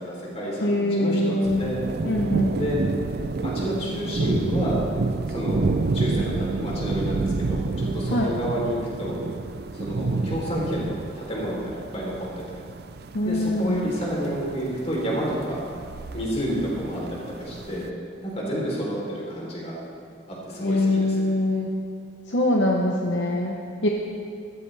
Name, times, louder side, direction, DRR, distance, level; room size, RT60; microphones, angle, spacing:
voice 1, 0.0-1.8 2.5-2.8 3.4-4.8 5.3-9.1 9.7-12.6 13.2-15.6 16.1-17.9 18.2-19.7 20.3-21.3, equal, 35° left, -4 dB, 3.5 m, -30 dB
voice 2, 0.6-1.7 2.0-2.6 8.1-8.3 13.1-13.9 20.6-21.7 22.3-23.9, left 1 dB, 65° left, -1 dB, 0.9 m, -23 dB
sound 1, 1.4-17.9, right 3 dB, 55° right, 0.5 m, -29 dB
14.0 x 14.0 x 3.4 m, 2.4 s
head